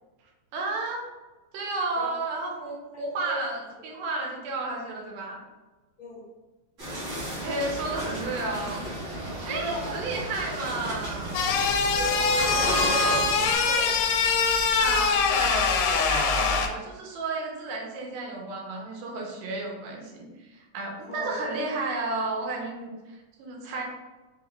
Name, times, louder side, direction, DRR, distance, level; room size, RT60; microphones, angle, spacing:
voice 1, 0.5-1.1 1.5-5.4 7.4-8.8 9.5-11.4 14.8-23.8, right 3 dB, 85° right, -1 dB, 2.2 m, -32 dB
sound 1, 6.8-13.6, equal, 40° right, 1.1 m, -33 dB
sound 2, 11.3-16.7, left 5 dB, 85° left, 2.1 m, -23 dB
voice 2, 11.9-14.0 21.1-21.3, equal, 60° left, -10 dB, 1.4 m, -35 dB
5.0 x 3.0 x 2.4 m, 1.2 s
omnidirectional pair, 3.8 m